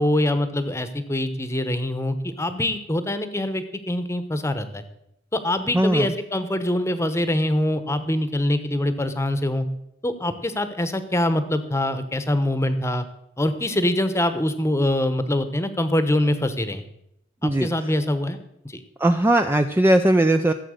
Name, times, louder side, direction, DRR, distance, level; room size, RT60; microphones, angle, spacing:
voice 1, 0.0-4.8 5.3-9.7 10.0-13.0 13.4-16.8 17.4-18.4 18.6-18.8, left 1 dB, 15° left, 10 dB, 0.9 m, -24 dB
voice 2, 5.7-6.1 17.4-17.7 19.0-20.5, right 1 dB, 10° right, 7 dB, 0.4 m, -18 dB
15.0 x 7.9 x 6.5 m, 0.80 s
head